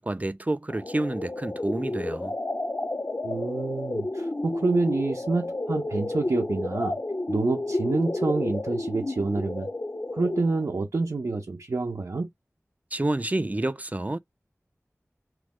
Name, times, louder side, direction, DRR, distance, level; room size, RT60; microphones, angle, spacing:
voice 1, 0.0-2.3 12.9-14.2, right 2 dB, 30° right, 0.4 m, -29 dB
sound 1, 0.7-10.7, left 2 dB, 40° left, 0.6 m, -31 dB
voice 2, 3.2-7.0 7.3-9.7 10.1-12.3, right 3 dB, 80° right, 0.6 m, -27 dB
3.0 x 2.1 x 3.6 m
wide cardioid pair, 45°, 5 cm